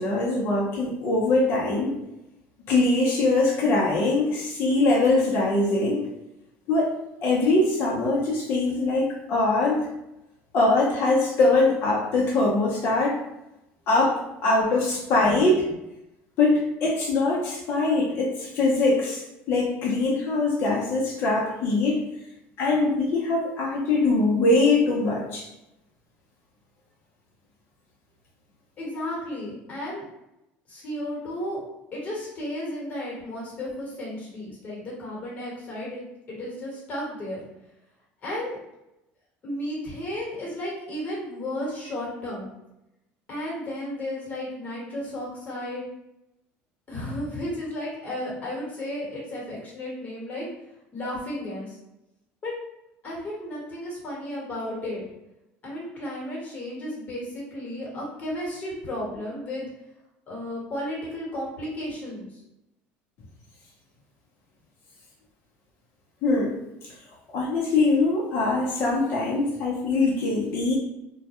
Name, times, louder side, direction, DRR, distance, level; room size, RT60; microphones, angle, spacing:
voice 1, 0.0-2.0 2.7-6.1 6.7-6.9 7.2-9.9 10.5-13.2 13.9-15.7 16.4-22.0 22.6-25.4 66.2-66.5 67.3-70.8, left 2 dB, 55° left, -5 dB, 0.6 m, -22 dB
voice 2, 28.8-30.1 30.7-31.6 31.9-37.4 38.2-38.6 39.4-42.5 43.3-45.8 46.9-50.5 50.9-51.8 52.4-52.5 53.0-55.0 55.6-59.7 60.3-62.4, left 1 dB, 35° left, -4 dB, 1.2 m, -33 dB
2.2 x 2.1 x 2.8 m, 0.89 s
cardioid pair, 130°, 5 cm